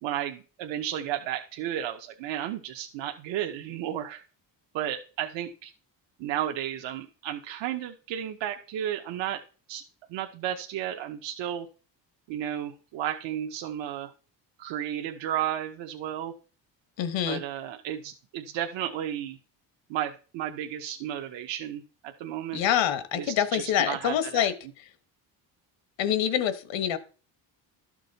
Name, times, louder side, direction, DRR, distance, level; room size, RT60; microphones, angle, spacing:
voice 1, 0.0-4.2 4.7-5.7 6.2-9.4 9.7-9.8 10.1-11.7 12.3-14.1 14.6-16.3 17.3-19.4 19.9-22.6 23.2-24.5, right 11 dB, 80° right, 4 dB, 0.8 m, -33 dB
voice 2, 17.0-17.4 22.5-24.5 26.0-27.0, left 10 dB, 80° left, 12 dB, 1.2 m, -26 dB
12.5 x 6.1 x 4.0 m, 0.38 s
cardioid pair, 170°, 44 cm